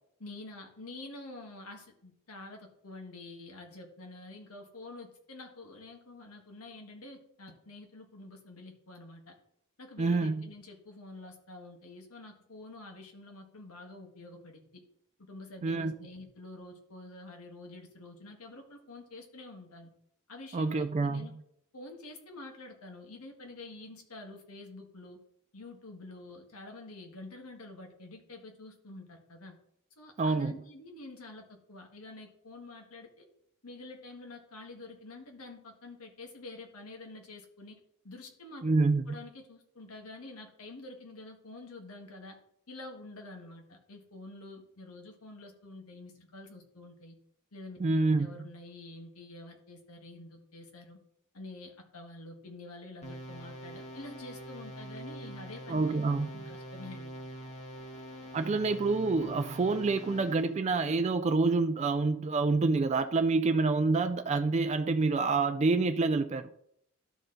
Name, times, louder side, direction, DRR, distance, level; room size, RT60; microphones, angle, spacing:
voice 1, 0.2-9.3 9.8-14.8 15.3-19.9 20.3-21.3 21.7-25.2 25.5-29.5 30.0-33.2 33.6-37.8 38.0-38.6 39.1-42.4 42.7-47.1 47.5-51.0 51.3-55.9 56.3-57.2, left 2 dB, 75° left, 1.6 m, -48 dB
voice 2, 10.0-10.5 15.6-15.9 20.5-21.3 30.2-30.5 38.6-39.2 47.8-48.4 55.7-56.4 58.3-66.5, right 3 dB, 30° right, 0.3 m, -27 dB
sound 1, 53.0-60.6, right 1 dB, 30° left, 1.4 m, -44 dB
12.0 x 4.3 x 3.8 m
head